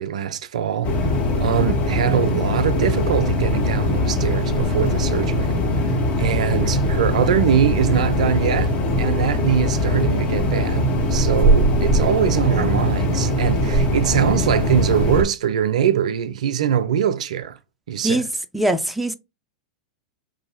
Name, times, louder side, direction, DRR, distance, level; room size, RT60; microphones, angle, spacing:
voice 1, 0.0-5.5 6.2-17.6 17.9-18.2, right 9 dB, 70° right, 0.4 m, -22 dB
sound 1, 0.8-15.2, left 1 dB, 40° left, 1.2 m, -21 dB
voice 2, 18.5-19.1, right 1 dB, 5° right, 0.4 m, -21 dB
4.5 x 2.7 x 2.8 m
hypercardioid pair, 95°, 4 cm